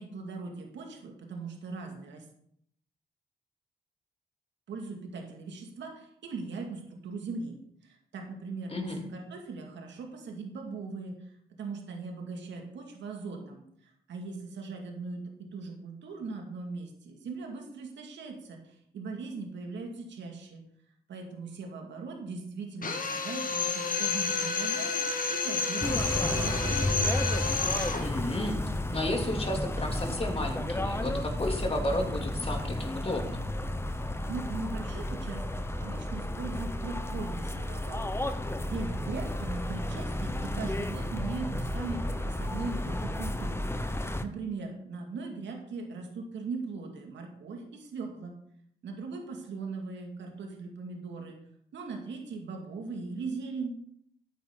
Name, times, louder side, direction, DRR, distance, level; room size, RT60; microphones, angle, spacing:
voice 1, 0.0-2.2 4.7-7.6 7.8-11.1 11.6-20.6 21.1-26.8 34.0-38.1 38.6-43.6 43.9-48.3 48.8-51.4 51.7-53.7, right 4 dB, 80° right, 2 dB, 2.4 m, -39 dB
voice 2, 8.7-9.0 28.0-28.6 28.9-33.4, left 1 dB, 30° left, 2 dB, 3.1 m, -32 dB
Drill, 22.8-28.1, left 4 dB, 50° left, 1.8 m, -30 dB
sound 1, 25.8-44.3, left 1 dB, 15° left, 1.0 m, -32 dB
13.5 x 8.8 x 4.0 m, 0.71 s
cardioid pair, 60°, 18 cm